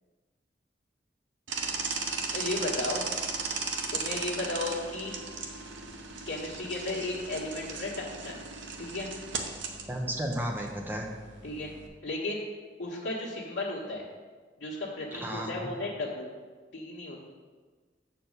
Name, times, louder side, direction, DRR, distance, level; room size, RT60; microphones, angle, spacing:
sound 1, 1.5-11.9, right 4 dB, 85° right, 0.9 m, -37 dB
voice 1, 2.3-3.0 3.9-5.1 6.3-8.4 8.8-9.1 11.4-11.7 12.0-12.4 12.8-14.0 14.6-16.3 16.7-17.2, left 2 dB, 85° left, -6 dB, 1.5 m, -34 dB
voice 2, 9.9-11.1 15.1-15.7, equal, 10° right, 1 dB, 0.8 m, -33 dB
7.4 x 4.5 x 6.7 m, 1.4 s
head